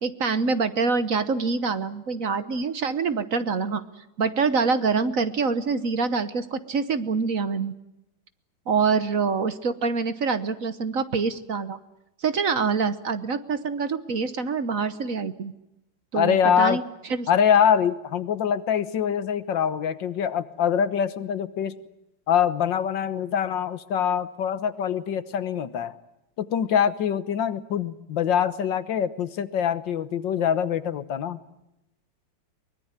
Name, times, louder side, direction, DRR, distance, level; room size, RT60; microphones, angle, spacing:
voice 1, 0.0-3.8 4.2-7.7 8.7-11.8 12.2-15.5 16.1-17.3, right 5 dB, 50° right, 12 dB, 1.4 m, -25 dB
voice 2, 16.1-16.8 17.3-21.8 22.3-26.0 26.4-31.4, left 8 dB, 75° left, 14 dB, 1.8 m, -24 dB
23.5 x 21.5 x 8.9 m, 0.87 s
omnidirectional pair, 2.0 m